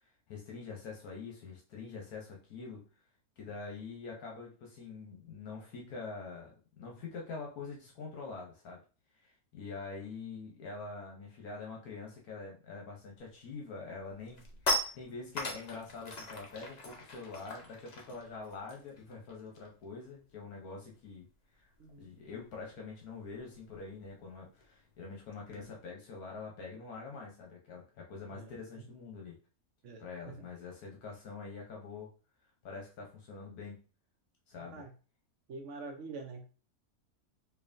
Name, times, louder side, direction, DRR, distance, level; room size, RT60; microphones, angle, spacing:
voice 1, 0.3-2.8 3.4-8.8 9.2-21.3 21.5-21.7 22.0-29.4 30.0-32.1 32.6-33.8 34.5-34.8, left 4 dB, 75° left, -1 dB, 1.3 m, -45 dB
sound 1, 13.3-13.5 13.9-19.8 20.1-20.3 20.6-25.6, left 1 dB, 40° left, 0.6 m, -40 dB
voice 2, 21.8-22.1 25.5-25.7 28.3-28.5 29.8-30.4 34.7-34.9 35.5-36.4, right 3 dB, 60° right, 4 dB, 0.9 m, -46 dB
4.5 x 2.7 x 2.6 m, 0.36 s
omnidirectional pair, 1.6 m